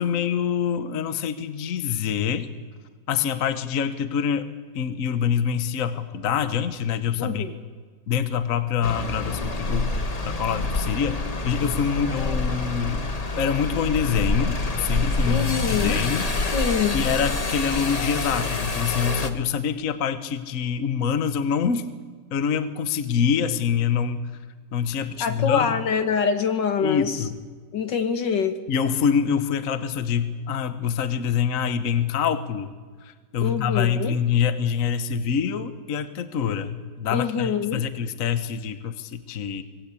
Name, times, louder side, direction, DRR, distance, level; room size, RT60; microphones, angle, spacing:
voice 1, 0.0-2.5 3.1-4.5 4.7-7.4 8.1-9.9 10.2-13.1 13.3-16.2 16.9-21.8 22.3-24.3 24.7-25.8 26.8-27.3 28.7-32.7 33.0-39.6, left 7 dB, 50° left, 10 dB, 1.3 m, -25 dB
voice 2, 7.2-7.5 15.3-16.0 16.5-17.0 25.2-27.2 27.7-28.6 33.4-34.2 37.1-37.8, left 6 dB, 75° left, 8 dB, 2.1 m, -25 dB
sound 1, 8.8-19.3, left 2 dB, 25° left, 1.1 m, -27 dB
25.5 x 20.0 x 8.3 m, 1.5 s
omnidirectional pair, 2.0 m